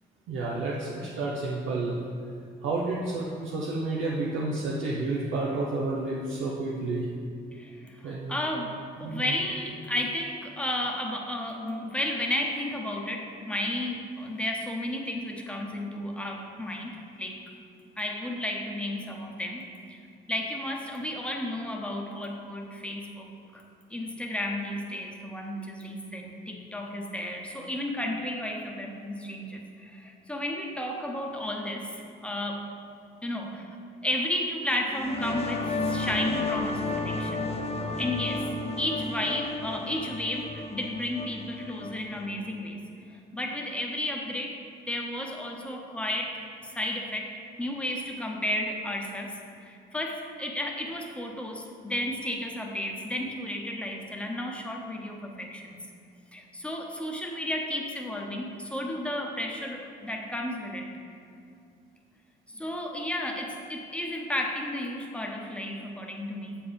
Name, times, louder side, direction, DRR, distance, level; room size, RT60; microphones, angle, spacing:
voice 1, 0.3-2.0 2.6-7.1 8.0-8.5 9.0-9.4, right 2 dB, 90° right, -5 dB, 0.8 m, -30 dB
voice 2, 7.5-8.0 8.3-17.4 18.0-20.0 20.3-23.6 23.9-32.6 33.2-33.7 34.0-37.6 38.0-38.5 38.8-42.8 43.1-55.8 56.3-60.9 62.5-66.6, left 1 dB, 5° left, 1 dB, 0.9 m, -33 dB
sound 1, 34.9-42.3, left 2 dB, 30° left, 0.6 m, -32 dB
7.3 x 4.4 x 5.2 m, 2.5 s
cardioid pair, 90°, 20 cm